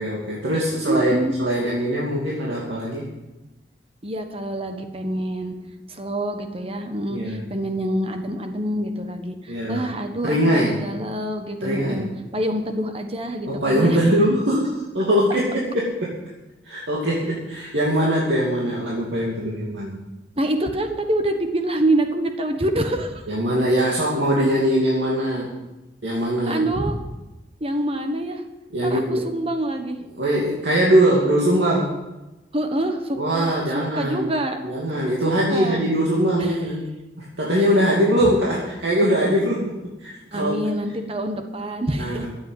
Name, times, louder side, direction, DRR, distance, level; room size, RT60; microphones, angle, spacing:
voice 1, 0.0-3.1 7.1-7.4 9.5-9.9 10.2-10.9 11.6-12.1 13.5-16.1 16.6-20.0 23.3-25.5 26.0-26.6 28.7-29.3 30.2-31.9 33.2-34.3 34.6-36.9 37.2-39.7 40.0-40.6 42.0-42.3, equal, 90° right, -5 dB, 2.6 m, -22 dB
voice 2, 0.9-1.3 4.0-5.5 5.9-14.0 20.4-23.2 26.5-27.0 27.6-28.4 28.8-30.0 32.5-34.6 35.2-35.8 36.4-36.5 40.3-42.2, right 1 dB, 35° right, 6 dB, 1.4 m, -26 dB
12.5 x 8.1 x 9.4 m, 1.0 s
head